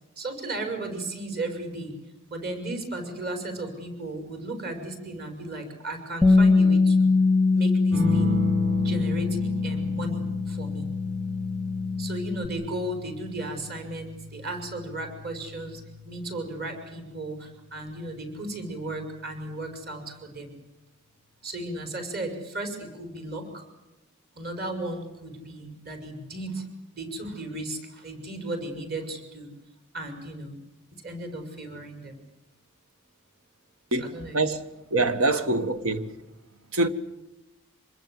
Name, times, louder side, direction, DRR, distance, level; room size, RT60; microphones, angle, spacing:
voice 1, 0.2-1.9 2.3-7.1 7.5-8.4 8.8-9.4 9.6-10.9 12.0-20.5 21.4-23.7 24.4-26.6 26.9-29.5 29.9-30.6 31.0-32.2 33.9-34.4 35.3-35.5, right 2 dB, 50° right, 5.9 m, -35 dB
Bass guitar, 6.2-12.5, left 3 dB, 5° right, 0.8 m, -23 dB
sound 1, 7.9-17.0 18.4-19.0, left 3 dB, 75° right, 5.7 m, -34 dB
voice 2, 33.9-34.6 34.9-36.1 36.7-36.9, right 2 dB, 90° right, 1.8 m, -25 dB
26.5 x 21.5 x 7.9 m
head